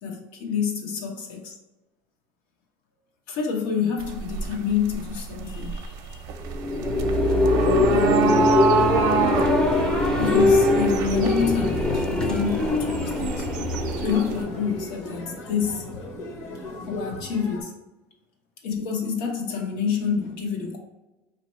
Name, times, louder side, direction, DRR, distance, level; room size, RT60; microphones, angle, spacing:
voice 1, 0.0-1.6 3.3-6.3 7.9-8.5 10.2-13.5 14.0-15.9 16.9-17.7 18.6-20.8, left 6 dB, 80° left, 1.0 m, -28 dB
sound 1, 4.0-14.4, right 6 dB, 60° right, 0.5 m, -28 dB
sound 2, 6.4-15.1, left 2 dB, 10° left, 0.5 m, -22 dB
sound 3, 10.9-17.6, left 1 dB, 45° left, 0.9 m, -37 dB
4.4 x 2.8 x 3.1 m
cardioid pair, 135°, 7 cm